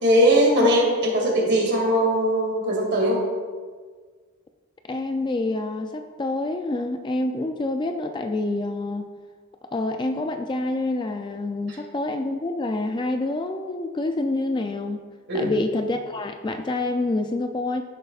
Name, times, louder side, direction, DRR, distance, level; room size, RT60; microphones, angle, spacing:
voice 1, 0.0-3.3 15.3-15.5, equal, 50° right, -2 dB, 2.3 m, -20 dB
voice 2, 4.9-9.1 9.7-15.0 15.3-17.8, left 2 dB, 20° left, 6 dB, 0.3 m, -27 dB
15.0 x 6.6 x 2.4 m, 1.5 s
head